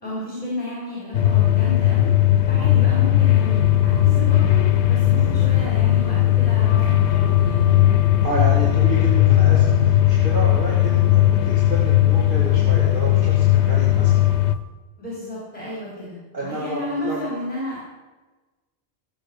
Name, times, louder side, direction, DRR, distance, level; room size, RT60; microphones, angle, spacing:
voice 1, 0.0-2.1 2.5-7.8 15.0-17.8, left 1 dB, 30° left, -6 dB, 4.6 m, -32 dB
sound 1, 1.1-14.5, left 13 dB, 85° left, 1.0 m, -17 dB
sound 2, 3.1-8.7, right 5 dB, 70° right, 0.8 m, -38 dB
sound 3, 3.2-14.6, left 4 dB, 50° left, 2.6 m, -45 dB
voice 2, 8.2-14.2 16.3-17.2, right 2 dB, 50° right, -4 dB, 2.4 m, -30 dB
17.5 x 7.6 x 6.9 m, 1.2 s
omnidirectional pair, 1.1 m